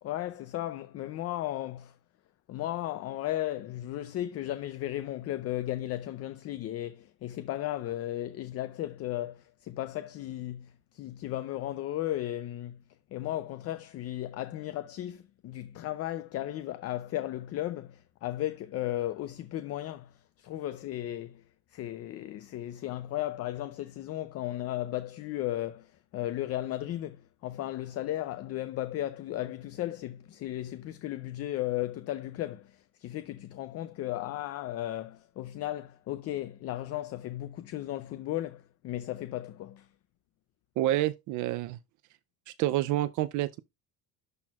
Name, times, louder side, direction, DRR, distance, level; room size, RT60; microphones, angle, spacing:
voice 1, 0.0-2.0 2.5-12.8 13.1-21.4 21.7-39.9, left 14 dB, 45° left, 0.5 m, -35 dB
voice 2, 40.8-41.8 42.5-43.6, right 15 dB, 65° right, 0.5 m, -28 dB
12.0 x 4.4 x 2.3 m
cardioid pair, 145°, 33 cm